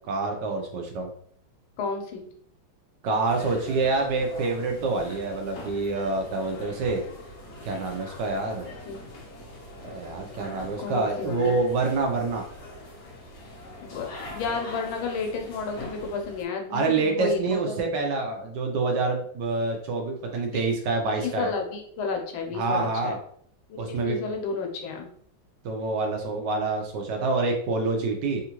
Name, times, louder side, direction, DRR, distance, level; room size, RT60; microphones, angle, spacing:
voice 1, 0.1-1.1 3.0-7.0 7.6-8.7 9.8-12.4 16.7-21.5 22.5-23.2 23.8-24.2 25.6-28.4, right 3 dB, 70° right, 3 dB, 1.1 m, -27 dB
voice 2, 1.8-2.3 8.9-9.0 10.8-11.6 13.8-17.8 20.5-20.7 21.2-23.1 23.7-25.1, left 4 dB, 85° left, 3 dB, 1.5 m, -32 dB
sound 1, 3.2-16.4, left 1 dB, 60° left, 1.2 m, -42 dB
3.6 x 2.4 x 2.8 m, 0.63 s
omnidirectional pair, 2.2 m